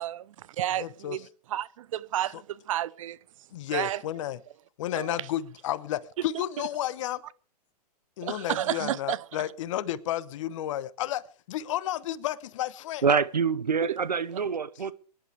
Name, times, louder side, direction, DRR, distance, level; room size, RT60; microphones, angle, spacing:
voice 1, 0.0-3.2 3.7-4.0 5.0-5.2 8.2-9.2 13.8-14.0, right 13 dB, 55° right, 0.7 m, -31 dB
voice 2, 0.8-1.2 2.3-2.4 3.5-4.4 4.8-7.2 8.2-13.0, left 12 dB, 50° left, 1.0 m, -32 dB
voice 3, 13.0-14.9, right 5 dB, 90° right, 1.0 m, -26 dB
24.0 x 11.0 x 3.4 m
hypercardioid pair, 125°, 21 cm